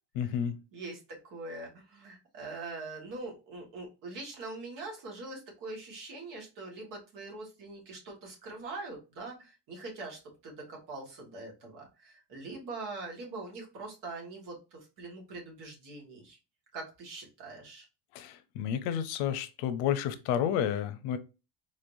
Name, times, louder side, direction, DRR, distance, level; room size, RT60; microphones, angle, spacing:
voice 1, 0.2-0.6 18.1-21.2, left 9 dB, 85° left, 11 dB, 0.7 m, -31 dB
voice 2, 1.2-16.4 16.7-17.8, right 3 dB, 45° right, -1 dB, 1.8 m, -43 dB
4.0 x 3.3 x 2.6 m, 0.29 s
cardioid pair, 170°, 44 cm